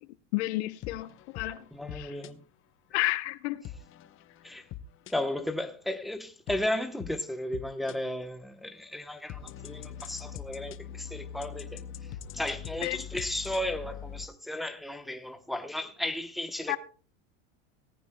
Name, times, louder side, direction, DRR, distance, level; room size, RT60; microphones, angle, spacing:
voice 1, 0.3-1.1 1.3-1.6 1.9-2.1 2.9-3.6 12.8-13.0 16.7-16.8, left 18 dB, 80° left, 0.7 m, -30 dB
sound 1, 0.8-2.3 3.6-5.5 6.5-7.9 8.6-14.3, left 9 dB, 40° left, 0.8 m, -43 dB
voice 2, 1.7-2.4 4.4-4.6 5.1-11.8 12.3-16.8, left 1 dB, ahead, 0.9 m, -34 dB
18.0 x 14.5 x 2.2 m
supercardioid pair, 125°, 33 cm